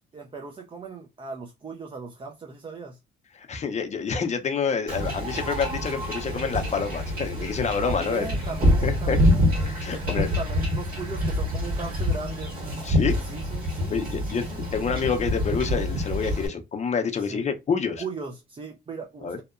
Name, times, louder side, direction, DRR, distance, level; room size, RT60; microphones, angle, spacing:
voice 1, 0.1-3.0 7.8-9.5 9.9-12.5 13.2-14.6 17.2-17.5 18.0-19.4, right 4 dB, 25° right, 0.4 m, -38 dB
voice 2, 3.3-8.3 8.6-9.2 9.7-10.3 12.8-13.2 13.9-14.5 14.7-18.0 19.2-19.4, left 5 dB, 35° left, 0.6 m, -27 dB
Wind / Ocean / Boat Water vehicle, 4.9-16.5, equal, 45° right, 1.6 m, -26 dB
2.7 x 2.1 x 2.4 m
cardioid pair, 90°, 20 cm